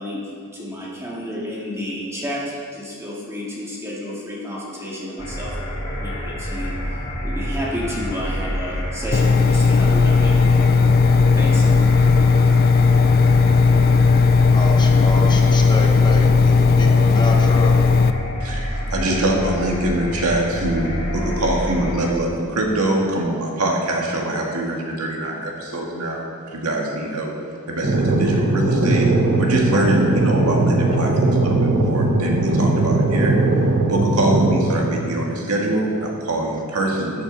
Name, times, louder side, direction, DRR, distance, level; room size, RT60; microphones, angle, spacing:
voice 1, 0.0-10.7 11.4-11.7, equal, 15° right, -5 dB, 2.0 m, -31 dB
sound 1, 5.2-22.1, equal, 75° left, 3.0 m, -28 dB
Engine, 9.1-18.1, left 4 dB, 40° left, 0.4 m, -15 dB
voice 2, 14.5-17.8, left 2 dB, 20° left, 1 dB, 1.1 m, -28 dB
voice 3, 18.4-26.3 26.5-27.3 27.7-29.1 29.4-33.3 33.9-37.2, right 1 dB, 85° right, 0 dB, 1.7 m, -23 dB
sound 2, 27.8-34.7, right 2 dB, 50° right, 1.0 m, -19 dB
14.0 x 8.6 x 4.0 m, 2.2 s
head